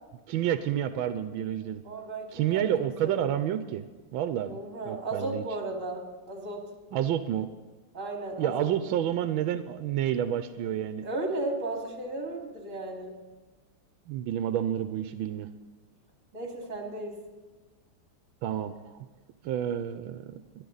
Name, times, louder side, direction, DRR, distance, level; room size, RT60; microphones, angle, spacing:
voice 1, 0.3-1.8 2.3-3.9 4.1-4.6 4.9-5.4 6.9-7.5 8.4-11.1 14.1-15.5 18.4-18.7 19.4-20.4, right 10 dB, 85° right, 10 dB, 1.4 m, -29 dB
voice 2, 1.8-2.7 3.0-3.4 4.4-6.7 7.9-8.7 11.0-13.1 16.3-17.2, right 2 dB, 40° right, 1 dB, 2.9 m, -35 dB
22.0 x 11.5 x 4.0 m, 1.3 s
omnidirectional pair, 2.2 m